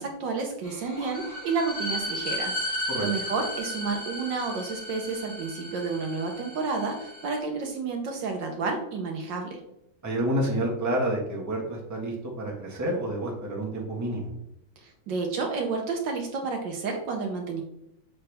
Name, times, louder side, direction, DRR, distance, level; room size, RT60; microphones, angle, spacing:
voice 1, 0.0-9.6 14.8-17.6, right 4 dB, 65° right, 3 dB, 1.5 m, -31 dB
sound 1, 0.6-7.4, left 1 dB, 35° left, 3.2 m, -35 dB
voice 2, 10.0-14.3, right 1 dB, 10° right, -3 dB, 1.2 m, -29 dB
6.7 x 5.7 x 3.4 m, 0.81 s
omnidirectional pair, 2.2 m